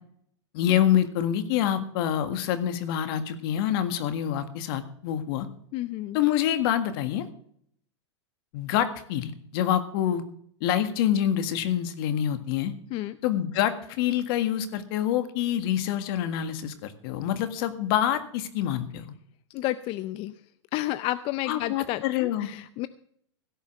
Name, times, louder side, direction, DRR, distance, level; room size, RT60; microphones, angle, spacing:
voice 1, 0.5-5.5 6.1-7.3 8.5-10.2 10.6-12.7 13.2-19.1 21.5-22.5, left 10 dB, 55° left, 10 dB, 1.7 m, -26 dB
voice 2, 5.7-6.2 12.9-13.2 19.5-20.3 20.7-22.9, left 16 dB, 40° left, 14 dB, 0.5 m, -31 dB
16.5 x 5.6 x 7.9 m, 0.64 s
hypercardioid pair, 120°, 15 cm